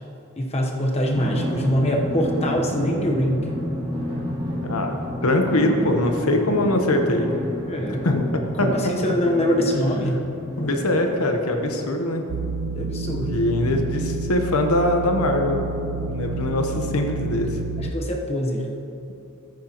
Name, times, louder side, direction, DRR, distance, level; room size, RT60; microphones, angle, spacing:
voice 1, 0.4-3.6 7.7-8.1 8.6-10.2 12.7-13.5 17.8-18.7, equal, 30° left, 1 dB, 1.0 m, -23 dB
Drum, 1.1-12.2, left 1 dB, 20° right, 2.2 m, -30 dB
voice 2, 4.6-4.9 5.2-7.3 8.0-8.3 8.6-8.7 10.6-12.2 13.2-15.6 16.1-17.6, left 1 dB, 90° left, 4 dB, 1.1 m, -22 dB
sound 1, 12.3-17.9, right 3 dB, 80° right, 0.4 m, -29 dB
14.0 x 9.3 x 3.0 m, 2.8 s
head